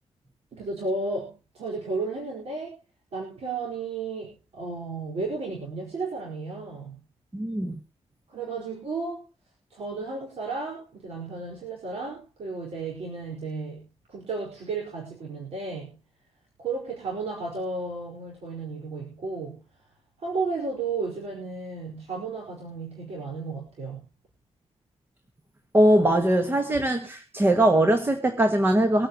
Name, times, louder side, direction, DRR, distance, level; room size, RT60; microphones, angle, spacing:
voice 1, 0.5-2.8 3.1-7.0 8.3-9.2 9.7-16.0 16.6-19.6 20.2-24.0, right 3 dB, 65° right, 4.8 m, -33 dB
voice 2, 7.3-7.8 25.7-29.1, right 1 dB, 20° right, 1.4 m, -21 dB
24.0 x 8.9 x 3.0 m
wide cardioid pair, 155°, 11 cm